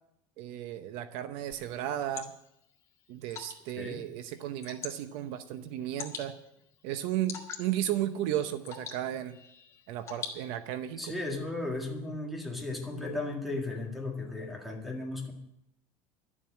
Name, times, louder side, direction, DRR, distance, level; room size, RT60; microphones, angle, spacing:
voice 1, 0.4-2.3 3.1-6.3 6.8-9.4 9.9-11.1, right 12 dB, 65° right, 11 dB, 0.8 m, -34 dB
Water / Drip, 1.5-10.9, left 6 dB, 30° left, 1.8 m, -46 dB
voice 2, 11.0-15.3, left 2 dB, ahead, 1 dB, 2.0 m, -35 dB
12.0 x 7.3 x 8.7 m, 0.82 s
cardioid pair, 170°, 10 cm